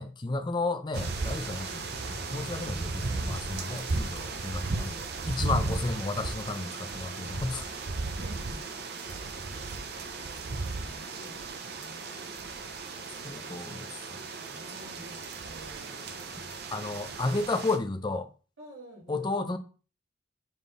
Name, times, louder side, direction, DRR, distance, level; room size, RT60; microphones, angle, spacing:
voice 1, 0.0-7.7 13.2-13.8 16.7-18.3 19.1-19.6, left 3 dB, 20° left, 0.6 m, -32 dB
sound 1, 0.9-17.8, right 3 dB, 55° right, 0.7 m, -35 dB
voice 2, 7.9-8.6 9.5-10.3 10.8-12.5 14.0-17.0 18.6-19.3, equal, 75° right, 2.9 m, -51 dB
7.2 x 3.7 x 4.0 m
head